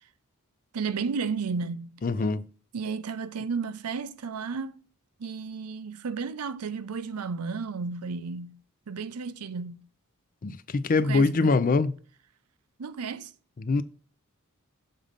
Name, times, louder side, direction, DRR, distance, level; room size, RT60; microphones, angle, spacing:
voice 1, 0.7-2.0 2.7-4.8 5.2-8.6 8.9-9.9 11.0-11.6 12.8-13.3, right 5 dB, 85° right, 0.5 m, -33 dB
voice 2, 2.0-2.5 10.4-12.0 13.6-13.8, left 3 dB, 40° left, 0.4 m, -24 dB
6.7 x 3.7 x 5.1 m
head